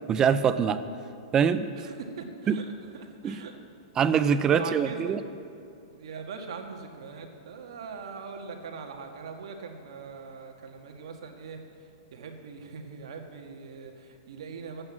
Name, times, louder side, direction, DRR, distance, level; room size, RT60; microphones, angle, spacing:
voice 1, 0.1-0.8 1.3-1.7 2.5-2.6 3.2-3.4 4.0-5.2, right 7 dB, 20° right, 12 dB, 0.5 m, -23 dB
voice 2, 1.8-2.6 2.9-3.6 4.3-5.2 5.8-11.6 12.1-14.8, right 5 dB, 75° right, 3 dB, 1.7 m, -41 dB
12.0 x 8.8 x 7.3 m, 2.5 s
hypercardioid pair, 140°, 3 cm